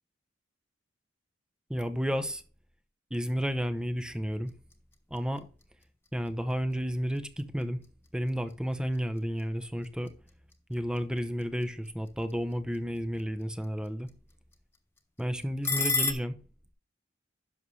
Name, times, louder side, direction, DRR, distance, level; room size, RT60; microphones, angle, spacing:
voice 1, 1.7-2.4 3.1-4.5 5.1-5.5 6.1-7.8 8.1-10.1 10.7-14.1 15.2-16.4, equal, 5° right, 0.7 m, -32 dB
sound 1, 4.3-16.1, left 4 dB, 10° left, 1.1 m, -40 dB
11.0 x 6.4 x 3.2 m
head